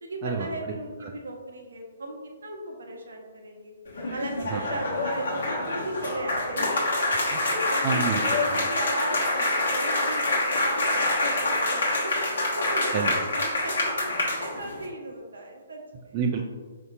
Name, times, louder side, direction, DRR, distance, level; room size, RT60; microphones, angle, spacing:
voice 1, 0.0-3.7 4.1-8.1 8.4-10.3 10.6-13.9 14.2-16.2, right 1 dB, 65° right, 1 dB, 0.7 m, -36 dB
sound 1, 3.8-14.8, left 2 dB, 65° left, 1.0 m, -26 dB
voice 2, 7.8-8.7 12.9-13.1 16.1-16.4, right 5 dB, 35° right, 1 dB, 0.3 m, -28 dB
5.1 x 2.6 x 2.4 m, 1.5 s
figure-of-eight pair, 125°, 0 cm